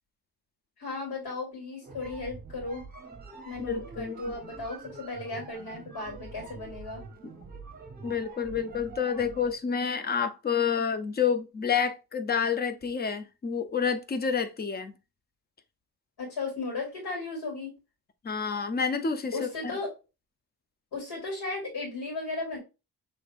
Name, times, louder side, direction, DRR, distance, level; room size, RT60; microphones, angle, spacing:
voice 1, 0.8-2.8 3.4-7.0 16.2-17.7 19.3-19.9 20.9-22.6, left 3 dB, 75° left, 2.7 m, -35 dB
sound 1, 1.8-9.6, right 4 dB, 25° right, 0.8 m, -45 dB
voice 2, 3.6-4.2 7.2-7.3 8.0-14.9 18.2-19.5, left 6 dB, 25° left, 0.4 m, -29 dB
5.1 x 3.6 x 2.3 m
wide cardioid pair, 180°, 39 cm